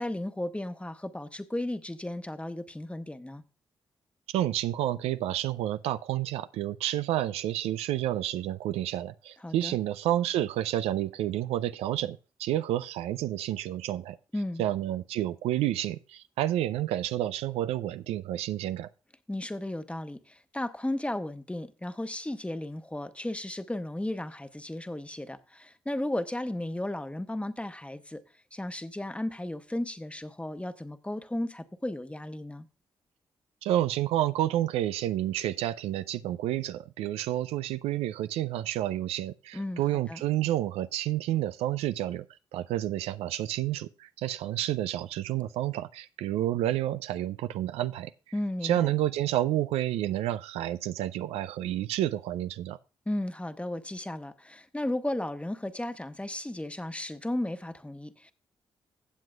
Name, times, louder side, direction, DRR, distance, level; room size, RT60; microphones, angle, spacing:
voice 1, 0.0-3.4 9.4-9.8 14.3-14.6 19.3-28.2 28.5-32.7 39.5-39.8 40.1-40.2 48.3-48.9 53.1-58.3, left 1 dB, 10° left, 1.1 m, -34 dB
voice 2, 4.3-14.2 14.6-18.9 33.6-42.2 42.5-48.1 48.6-52.8, right 13 dB, 85° right, 0.4 m, -30 dB
15.5 x 7.6 x 2.3 m
supercardioid pair, 45°, 10 cm